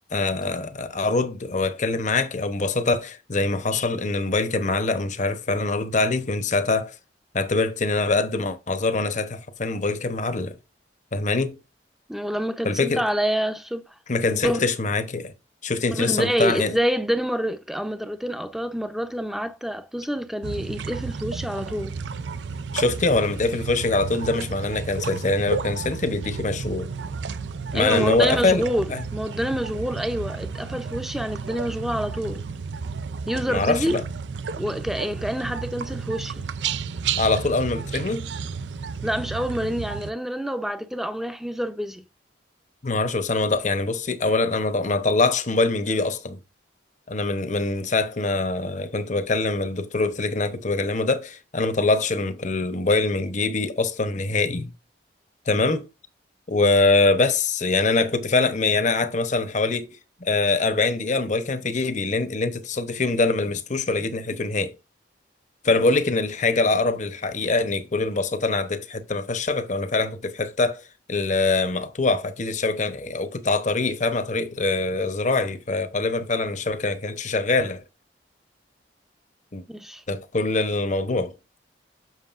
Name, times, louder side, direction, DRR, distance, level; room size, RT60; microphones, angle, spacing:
voice 1, 0.1-7.0 7.3-10.6 11.1-11.6 12.6-13.0 14.1-15.3 15.6-16.8 22.7-26.9 27.7-28.6 28.9-29.0 33.5-34.0 37.2-38.3 42.8-46.4 47.1-54.7 55.5-55.9 56.5-59.9 60.2-64.7 65.6-70.8 71.1-77.8 79.5-79.6 80.1-81.3, left 3 dB, 40° left, 0.9 m, -24 dB
voice 2, 12.1-13.9 14.3-14.6 15.9-22.0 27.7-32.5 33.3-34.0 34.6-36.5 39.0-42.1 79.7-80.0, equal, ahead, 0.6 m, -27 dB
sound 1, 20.4-40.1, right 5 dB, 75° right, 0.4 m, -32 dB
7.3 x 6.3 x 2.5 m
head